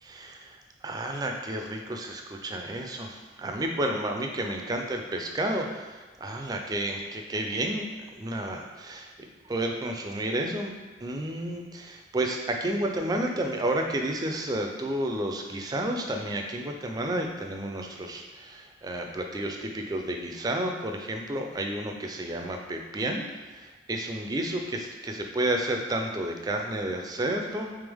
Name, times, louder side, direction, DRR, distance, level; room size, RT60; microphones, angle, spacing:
voice 1, 0.0-0.6 0.8-10.7 11.0-23.2 23.5-27.7, right 1 dB, 20° right, 3 dB, 0.3 m, -31 dB
3.4 x 3.3 x 3.5 m, 1.3 s
head